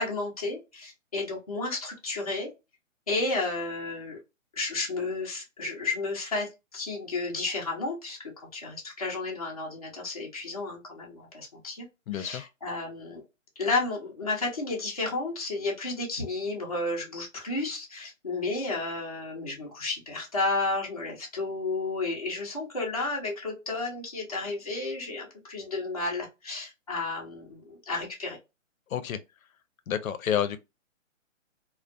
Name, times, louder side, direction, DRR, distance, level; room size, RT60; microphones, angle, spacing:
voice 1, 0.0-2.5 3.1-4.2 4.5-11.9 12.1-13.2 13.6-28.4, left 3 dB, 30° left, 0.5 m, -32 dB
voice 2, 12.1-12.5 28.9-29.2 29.9-30.6, left 9 dB, 85° left, 0.6 m, -29 dB
2.4 x 2.1 x 2.4 m
hypercardioid pair, 175°, 40 cm